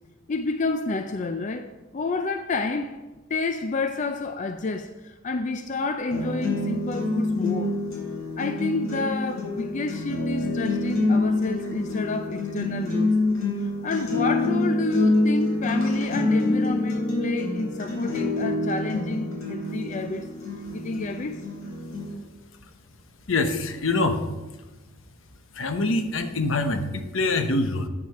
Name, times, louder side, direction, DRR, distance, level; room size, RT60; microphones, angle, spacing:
voice 1, 0.3-3.0 3.3-7.8 8.4-13.2 13.6-20.3 20.7-21.4, left 3 dB, 35° left, 0.4 m, -29 dB
sound 1, 6.1-22.1, left 2 dB, 90° left, 3.5 m, -26 dB
voice 2, 23.3-24.2 25.5-27.9, left 2 dB, 70° left, 1.0 m, -25 dB
8.6 x 7.3 x 5.8 m
head